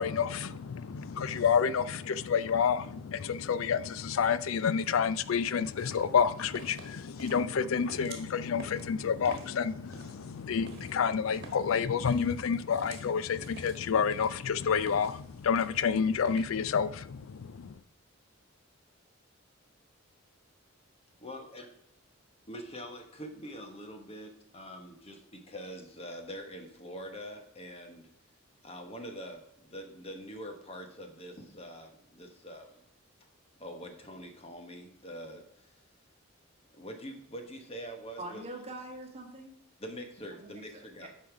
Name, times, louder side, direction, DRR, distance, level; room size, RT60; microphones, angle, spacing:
voice 1, 0.0-17.8, left 6 dB, 75° left, 0.4 m, -29 dB
sound 1, 5.6-16.5, right 3 dB, 50° right, 1.5 m, -51 dB
voice 2, 21.2-21.7 22.5-28.1 28.6-32.8 33.6-35.8 36.7-38.4 39.8-41.1, equal, 30° left, 1.3 m, -44 dB
voice 3, 38.2-39.5 40.4-41.1, right 1 dB, 30° right, 1.6 m, -44 dB
8.5 x 5.7 x 4.8 m
head